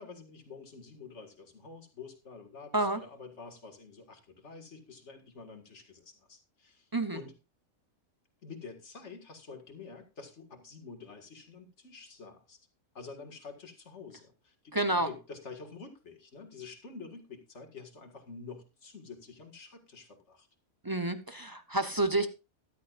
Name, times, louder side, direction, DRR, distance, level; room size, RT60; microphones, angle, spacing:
voice 1, 0.0-7.3 8.4-12.6 12.9-20.5, left 4 dB, 55° left, 5 dB, 2.2 m, -48 dB
voice 2, 14.7-15.1 20.8-22.3, right 2 dB, 20° right, 10 dB, 0.6 m, -29 dB
14.0 x 12.0 x 2.5 m, 0.26 s
omnidirectional pair, 1.5 m